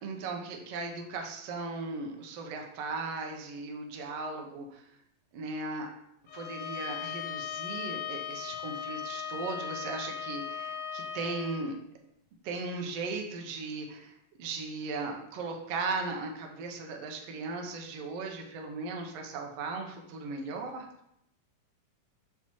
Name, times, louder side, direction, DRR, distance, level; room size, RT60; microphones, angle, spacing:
voice 1, 0.0-5.0 5.3-5.9 6.3-11.7 12.4-20.9, right 3 dB, 70° right, 2 dB, 1.6 m, -37 dB
Bowed string instrument, 6.3-11.6, left 8 dB, 75° left, 1.9 m, -38 dB
6.2 x 5.7 x 3.0 m, 0.77 s
omnidirectional pair, 3.6 m